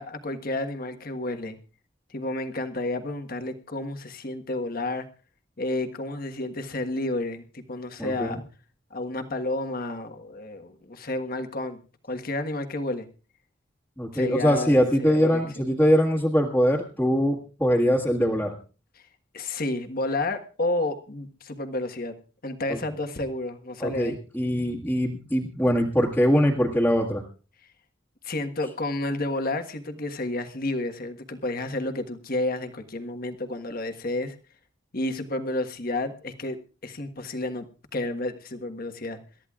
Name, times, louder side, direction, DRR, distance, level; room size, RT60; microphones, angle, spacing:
voice 1, 0.0-1.6 2.1-5.1 5.6-8.4 8.9-11.8 12.1-13.1 14.1-15.6 19.3-22.1 22.4-24.2 28.2-34.3 34.9-36.6 36.8-37.6 37.9-39.2, left 2 dB, 45° left, 6 dB, 1.4 m, -31 dB
voice 2, 8.0-8.4 14.0-18.5 22.7-22.8 23.8-27.2, equal, 5° left, -6 dB, 1.7 m, -22 dB
27.0 x 13.0 x 2.4 m, 0.34 s
head